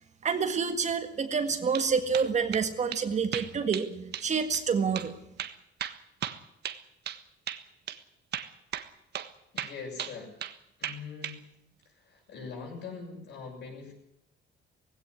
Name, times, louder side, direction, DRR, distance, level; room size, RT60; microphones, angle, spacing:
voice 1, 0.2-5.1, right 6 dB, 35° right, 8 dB, 1.7 m, -28 dB
sound 1, 1.5-1.9 2.1-2.7 2.9-3.0 3.3-3.9 4.1-4.3 4.5-4.6 5.0-5.1 5.4-7.2 7.5-7.6 7.9-8.0 8.3-8.9 9.1-9.3 9.6-10.6 10.8-11.4, right 10 dB, 55° right, 1.5 m, -36 dB
voice 2, 9.5-10.3 10.8-11.4 11.8-13.9, left 5 dB, 65° left, -5 dB, 7.4 m, -42 dB
19.0 x 16.5 x 9.9 m, 0.79 s
cardioid pair, 160°, 20 cm